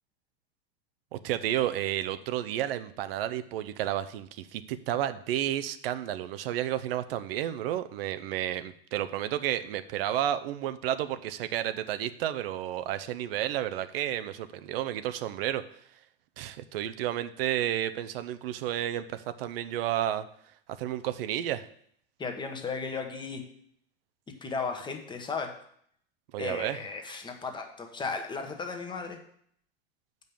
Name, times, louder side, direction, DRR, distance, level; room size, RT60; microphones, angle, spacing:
voice 1, 1.1-15.6 16.4-20.3 20.8-21.7 26.3-26.8, right 12 dB, 70° right, 11 dB, 0.7 m, -31 dB
voice 2, 22.2-23.4 24.4-25.6 26.4-29.2, left 4 dB, 15° left, 5 dB, 1.1 m, -35 dB
7.5 x 5.4 x 6.9 m, 0.65 s
supercardioid pair, 135°, 30 cm